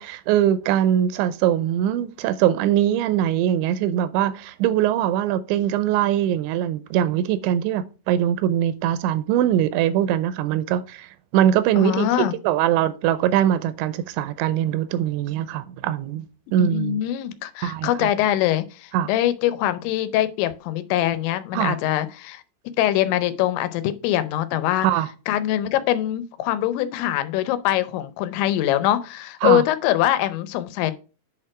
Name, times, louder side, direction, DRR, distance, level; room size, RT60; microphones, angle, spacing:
voice 1, 0.0-11.1 11.3-16.3 16.5-17.0 17.6-18.1 18.9-19.1 21.5-21.8 24.8-25.1 29.4-29.6, right 11 dB, 90° right, 3.0 m, -22 dB
voice 2, 11.8-12.3 16.6-22.4 22.8-24.9 25.3-30.9, left 12 dB, 90° left, 3.1 m, -23 dB
8.1 x 4.5 x 4.8 m
omnidirectional pair, 5.1 m